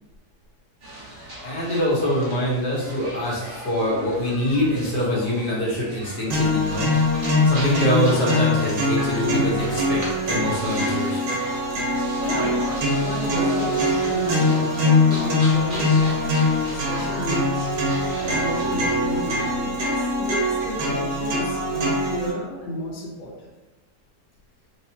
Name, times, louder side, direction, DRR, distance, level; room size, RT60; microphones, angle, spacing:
sound 1, 0.8-19.6, right 1 dB, 35° right, 0.9 m, -37 dB
voice 1, 1.4-6.9 7.4-11.2, equal, 90° left, -5 dB, 1.7 m, -24 dB
sound 2, 6.3-22.3, left 2 dB, 90° right, 1.4 m, -22 dB
voice 2, 12.2-16.2 16.5-17.7 18.2-23.5, left 1 dB, 50° left, -3 dB, 0.6 m, -33 dB
4.6 x 2.1 x 2.8 m, 1.1 s
omnidirectional pair, 1.8 m